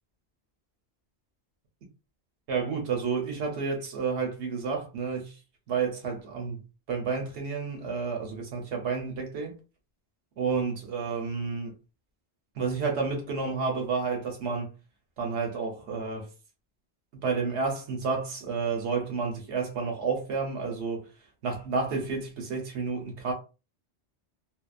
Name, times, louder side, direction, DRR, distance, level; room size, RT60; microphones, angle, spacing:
voice 1, 2.5-5.3 5.7-6.6 6.9-9.6 10.4-11.8 12.5-14.7 15.2-16.3 17.1-21.1 21.4-23.3, right 5 dB, 90° right, 1.1 m, -30 dB
2.7 x 2.1 x 2.3 m
omnidirectional pair, 1.1 m